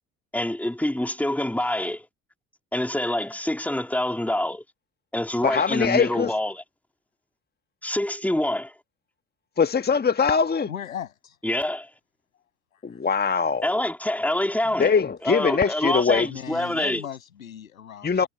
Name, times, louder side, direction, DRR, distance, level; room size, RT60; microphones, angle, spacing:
voice 1, 0.3-2.1 2.7-4.6 5.1-6.6 7.8-8.7 11.4-11.9 13.6-14.9 15.2-17.0, left 1 dB, 5° left, 3.5 m, -26 dB
voice 2, 5.4-6.3 9.6-10.7 12.8-13.7 14.8-16.3 18.0-18.3, left 5 dB, 25° left, 1.5 m, -22 dB
voice 3, 10.7-11.4 12.9-13.1 16.3-18.3, left 9 dB, 80° left, 7.8 m, -37 dB
figure-of-eight pair, 50°, 41 cm